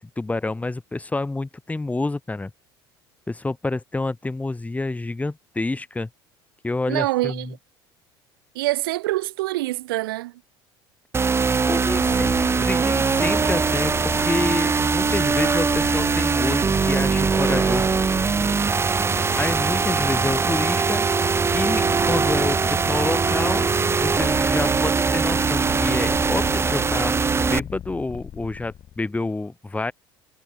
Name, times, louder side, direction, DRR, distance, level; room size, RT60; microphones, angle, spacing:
voice 1, 0.2-2.5 3.3-6.1 6.6-7.5 11.7-18.1 18.4-18.5 19.4-21.1 21.5-23.7 24.0-29.9, left 2 dB, 10° left, 2.6 m, -28 dB
voice 2, 6.9-7.5 8.5-10.3 11.9-12.0, right 18 dB, 65° right, 2.2 m, -25 dB
sound 1, 11.1-27.6, right 5 dB, 20° right, 1.1 m, -21 dB
Purr, 11.9-29.1, left 10 dB, 40° left, 7.6 m, -38 dB
figure-of-eight pair, 65°, 13 cm